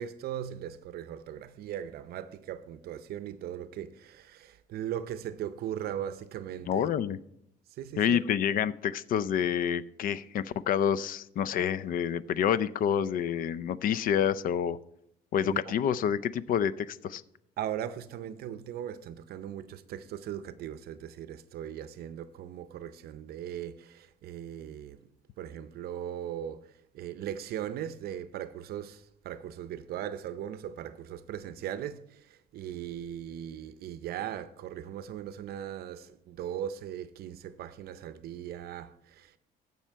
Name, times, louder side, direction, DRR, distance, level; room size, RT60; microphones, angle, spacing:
voice 1, 0.0-7.0 7.7-8.2 15.5-15.7 17.6-25.0 25.4-39.4, right 10 dB, 65° right, 0.6 m, -39 dB
voice 2, 6.7-7.2 8.0-14.8 15.3-17.2, left 9 dB, 55° left, 0.5 m, -28 dB
15.0 x 5.6 x 4.5 m
cardioid pair, 110°, 17 cm